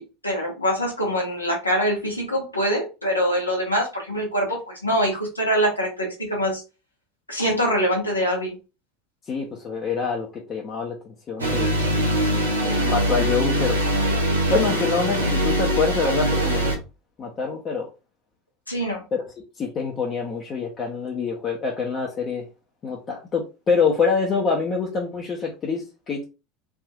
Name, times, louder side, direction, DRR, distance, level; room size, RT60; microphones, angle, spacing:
voice 1, 0.0-6.6 7.3-8.6 11.8-11.9 18.7-19.1, equal, 90° left, -2 dB, 1.0 m, -24 dB
voice 2, 9.3-11.7 12.5-13.8 14.5-16.8 17.2-17.9 19.1-19.2 19.6-22.5 22.8-26.3, left 5 dB, 35° left, -1 dB, 0.8 m, -26 dB
sound 1, 11.4-16.8, equal, 85° right, 0.8 m, -22 dB
3.5 x 2.6 x 2.4 m, 0.29 s
figure-of-eight pair, 75°, 0 cm